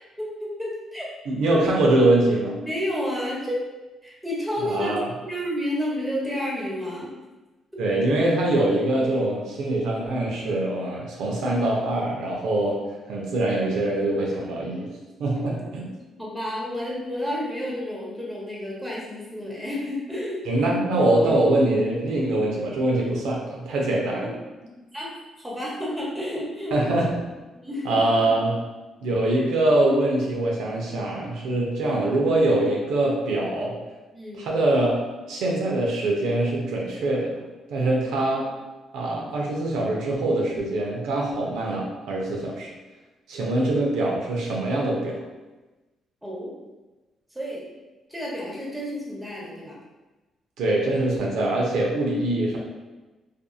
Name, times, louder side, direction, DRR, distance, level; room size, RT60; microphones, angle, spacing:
voice 1, 0.2-1.1 2.7-3.6 4.0-7.1 15.5-15.9 16.2-20.4 24.6-25.1 25.4-26.8 27.5-28.0 34.1-34.5 37.7-37.9 46.2-46.5 47.3-47.6 48.1-49.8, left 1 dB, 5° right, -5 dB, 0.9 m, -31 dB
voice 2, 1.3-2.6 4.6-5.1 7.8-12.8 13.1-14.9 15.2-15.9 20.5-24.3 26.7-27.1 27.8-28.5 29.0-33.7 34.4-35.0 35.3-37.3 37.7-38.5 38.9-42.7 43.3-45.1 50.6-52.6, right 1 dB, 85° right, -2 dB, 0.5 m, -23 dB
2.6 x 2.5 x 2.3 m, 1.1 s
cardioid pair, 90°, 0 cm